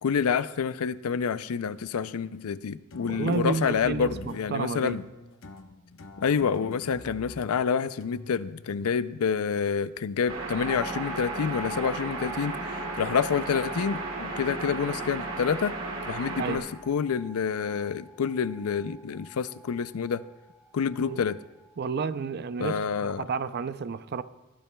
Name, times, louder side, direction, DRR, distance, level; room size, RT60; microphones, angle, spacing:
voice 1, 0.0-5.0 6.2-15.8 16.1-20.2 20.7-21.4 22.6-23.2, left 6 dB, 80° left, 0.4 m, -28 dB
sound 1, 2.9-9.3, left 2 dB, 65° left, 0.8 m, -46 dB
voice 2, 3.0-5.0 16.4-16.7 21.1-21.2 21.8-24.2, right 5 dB, 50° right, 0.5 m, -31 dB
sound 2, 10.3-16.6, right 3 dB, 65° right, 2.5 m, -34 dB
sound 3, 10.6-21.8, right 1 dB, 10° right, 1.6 m, -46 dB
20.5 x 14.0 x 2.3 m
head